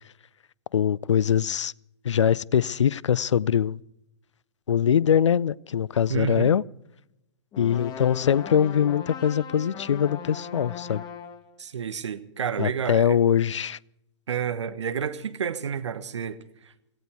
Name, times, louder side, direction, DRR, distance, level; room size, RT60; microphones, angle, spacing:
voice 1, 0.7-1.7 2.0-3.8 4.7-6.6 7.6-11.0 12.6-13.8, left 8 dB, 80° left, 0.5 m, -22 dB
voice 2, 6.1-6.5 11.6-13.2 14.3-16.4 16.6-16.7, right 7 dB, 75° right, 1.4 m, -30 dB
sound 1, 7.5-11.5, left 7 dB, 25° left, 1.9 m, -38 dB
17.0 x 16.5 x 4.7 m
figure-of-eight pair, 110°, 15 cm